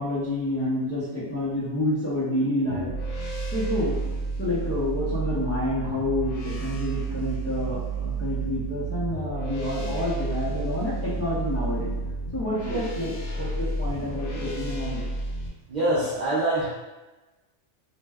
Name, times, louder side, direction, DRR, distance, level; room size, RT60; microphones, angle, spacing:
voice 1, 0.0-2.9 3.5-4.0 4.4-11.9 12.3-15.1, left 1 dB, 20° left, -10 dB, 0.4 m, -28 dB
sound 1, 2.7-15.5, right 3 dB, 75° left, 0.9 m, -31 dB
voice 2, 15.7-16.7, right 1 dB, 55° right, -9 dB, 0.5 m, -24 dB
2.5 x 2.2 x 3.3 m, 1.1 s
omnidirectional pair, 1.3 m